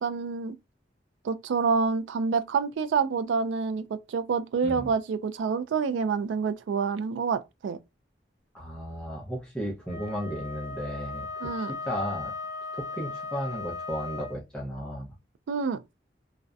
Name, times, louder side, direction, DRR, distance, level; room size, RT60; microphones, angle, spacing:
voice 1, 0.0-0.6 1.2-7.8 11.4-11.7 15.5-15.8, right 5 dB, 85° right, 0.3 m, -27 dB
voice 2, 8.5-12.3 12.7-15.1, equal, 5° left, 0.5 m, -34 dB
Wind instrument woodwind instrument, 9.8-14.4, left 4 dB, 75° left, 0.8 m, -37 dB
2.6 x 2.1 x 2.3 m
head